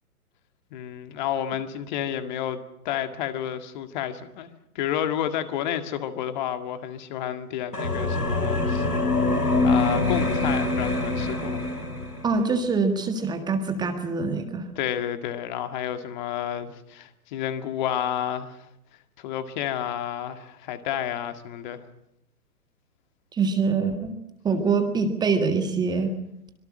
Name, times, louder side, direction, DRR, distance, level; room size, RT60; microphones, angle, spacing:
voice 1, 0.7-8.9 9.6-11.6 14.8-18.7 19.2-21.8, left 10 dB, 30° left, 9 dB, 2.0 m, -30 dB
sound 1, 7.7-12.4, left 2 dB, 85° left, 4.3 m, -24 dB
voice 2, 12.2-14.6 23.3-24.1 24.4-26.1, right 4 dB, 10° right, 7 dB, 1.6 m, -24 dB
25.5 x 23.0 x 6.4 m, 0.83 s
figure-of-eight pair, 125°, 45 cm